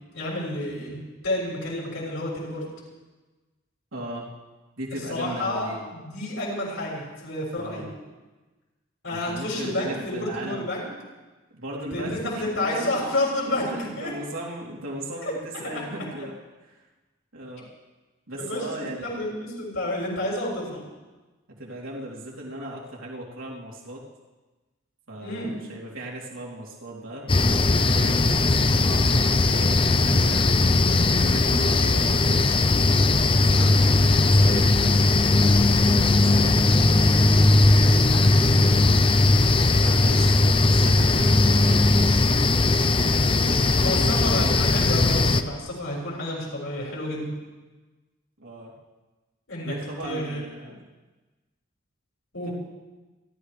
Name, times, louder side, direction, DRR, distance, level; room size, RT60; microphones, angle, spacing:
voice 1, 0.1-2.6 5.1-7.8 9.0-10.9 11.9-14.1 15.2-15.7 18.4-20.8 25.2-25.5 43.8-47.3 49.5-49.7 50.0-50.4 52.3-52.5, left 1 dB, 75° left, -4 dB, 6.8 m, -30 dB
voice 2, 3.9-4.3 4.8-5.8 7.5-7.9 9.1-10.7 11.5-13.0 13.5-16.3 16.6-16.8 17.3-17.7 18.3-19.3 21.6-24.0 25.1-30.5 31.1-32.6 33.2-34.8 35.7-37.1 37.7-38.6 39.5-42.7 43.0-44.6 48.4-48.7 49.6-50.8 52.4-52.5, right 1 dB, 90° right, -4 dB, 3.4 m, -37 dB
sound 1, 27.3-45.4, left 2 dB, 25° left, 0.6 m, -19 dB
29.5 x 13.5 x 3.4 m, 1.2 s
head